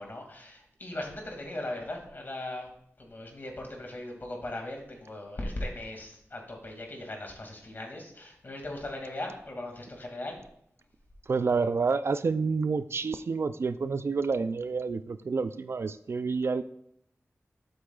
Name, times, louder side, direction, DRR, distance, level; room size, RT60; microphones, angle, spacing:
voice 1, 0.0-2.7 3.0-10.4, left 1 dB, 45° left, 2 dB, 2.2 m, -38 dB
voice 2, 11.3-16.6, right 4 dB, 60° right, 12 dB, 0.4 m, -29 dB
12.0 x 7.8 x 2.4 m, 0.72 s
wide cardioid pair, 105°, 5 cm